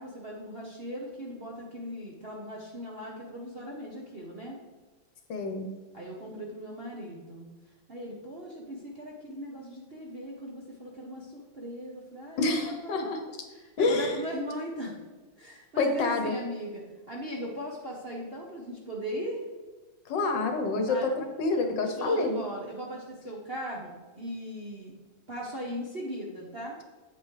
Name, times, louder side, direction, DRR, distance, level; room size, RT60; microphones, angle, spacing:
voice 1, 0.0-4.6 5.9-7.5 7.9-13.1 13.5-15.0 15.4-19.4 20.9-21.1 21.9-24.9 25.3-26.8, equal, 40° right, -3 dB, 0.9 m, -38 dB
voice 2, 5.3-5.7 12.4-13.2 13.8-14.2 15.8-16.3 20.1-22.4, left 3 dB, 65° left, 5 dB, 1.4 m, -27 dB
8.3 x 8.1 x 3.2 m, 1.3 s
omnidirectional pair, 2.3 m